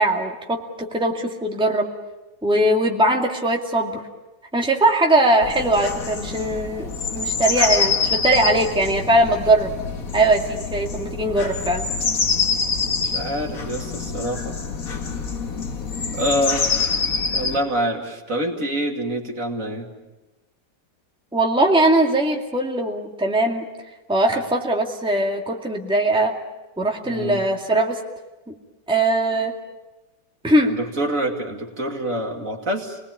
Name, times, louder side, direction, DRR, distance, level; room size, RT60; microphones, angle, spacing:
voice 1, 0.0-1.9 2.4-4.0 4.5-9.7 10.1-11.8 21.3-23.7 24.1-26.3 26.8-28.0 28.5-28.6 28.9-29.5 30.4-30.7, right 1 dB, 5° right, 1 dB, 2.2 m, -20 dB
sound 1, 5.4-17.6, left 5 dB, 55° left, 2.0 m, -26 dB
voice 2, 12.8-14.6 16.1-17.0 17.3-19.9 24.3-24.4 27.0-27.4 30.7-33.0, right 1 dB, 50° right, 2 dB, 2.9 m, -26 dB
28.5 x 20.5 x 8.7 m, 1.1 s
omnidirectional pair, 1.9 m